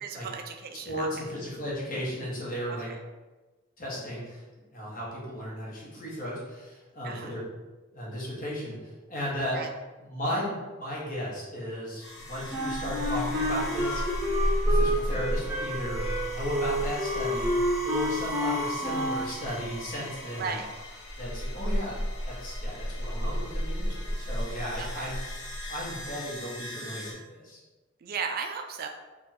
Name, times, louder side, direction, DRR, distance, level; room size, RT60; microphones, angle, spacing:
voice 1, 0.0-1.1 2.9-3.0 7.0-7.3 9.5-9.7 20.4-20.7 24.8-25.1 28.0-28.9, right 6 dB, 50° right, 5 dB, 0.3 m, -35 dB
voice 2, 0.8-2.9 3.8-4.4 4.7-7.4 7.9-9.6 10.0-14.0 14.6-17.5 17.8-20.6 21.2-22.0 22.2-25.2 25.7-27.6, equal, 45° left, -5 dB, 1.3 m, -35 dB
sound 1, 12.0-27.1, equal, 80° left, 0.9 m, -33 dB
Wind instrument woodwind instrument, 12.5-19.3, equal, 15° right, 0.8 m, -29 dB
3.5 x 2.4 x 4.2 m, 1.2 s
head